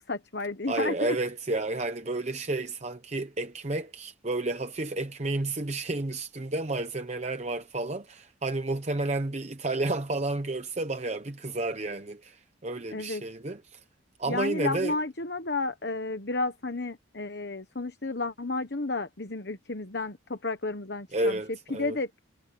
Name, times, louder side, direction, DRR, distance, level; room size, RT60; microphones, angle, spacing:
voice 1, 0.1-1.2 12.9-13.2 14.2-21.3 21.7-22.2, left 3 dB, 55° left, 1.2 m, -32 dB
voice 2, 0.7-13.8 14.2-15.0 21.1-22.0, right 2 dB, 35° right, 0.8 m, -31 dB
head